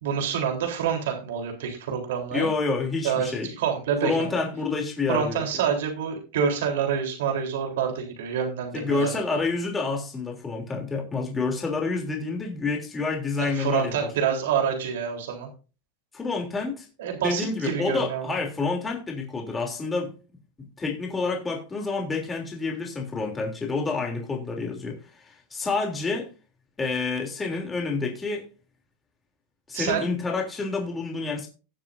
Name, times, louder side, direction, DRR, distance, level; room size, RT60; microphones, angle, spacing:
voice 1, 0.0-2.5 3.0-4.3 5.1-9.4 13.4-15.5 17.0-18.3 29.7-30.1, right 7 dB, 80° right, 3.7 m, -27 dB
voice 2, 2.3-3.5 4.0-5.6 8.7-14.1 16.1-16.9 17.2-20.1 20.6-26.3 26.8-28.4 29.7-31.5, left 4 dB, 15° left, 3.1 m, -28 dB
19.0 x 7.5 x 2.7 m
supercardioid pair, 145°, 0 cm